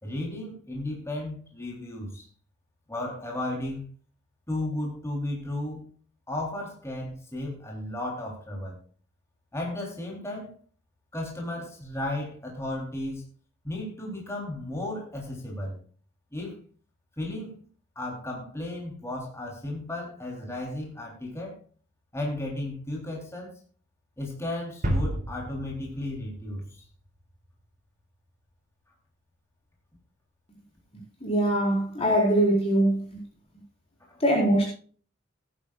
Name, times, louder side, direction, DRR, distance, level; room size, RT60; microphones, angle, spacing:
voice 1, 0.0-2.2 2.9-3.9 4.5-5.8 6.3-8.8 9.5-10.5 11.1-13.2 13.6-15.8 16.3-16.6 17.2-17.6 18.0-21.6 22.1-23.5 24.2-26.8 34.1-34.2, left 1 dB, 15° left, -2 dB, 3.6 m, -34 dB
sound 1, 24.8-27.5, equal, 45° right, 3.5 m, -32 dB
voice 2, 31.2-33.2 34.2-34.7, right 1 dB, 30° left, -2 dB, 4.6 m, -22 dB
17.5 x 11.0 x 2.5 m, 0.42 s
head